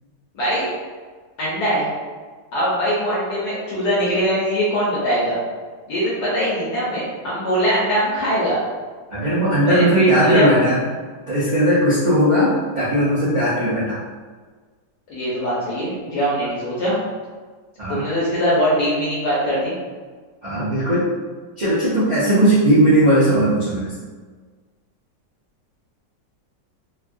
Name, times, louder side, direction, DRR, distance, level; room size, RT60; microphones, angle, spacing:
voice 1, 0.3-0.7 1.4-1.9 2.5-5.4 5.9-8.6 9.7-10.5 15.1-17.0 17.9-19.7, equal, 70° left, -8 dB, 1.3 m, -21 dB
voice 2, 9.1-10.8 11.3-14.0 17.8-18.0 20.4-21.1 21.6-23.9, equal, 55° right, -12 dB, 0.4 m, -18 dB
3.2 x 2.3 x 2.5 m, 1.5 s
omnidirectional pair, 1.9 m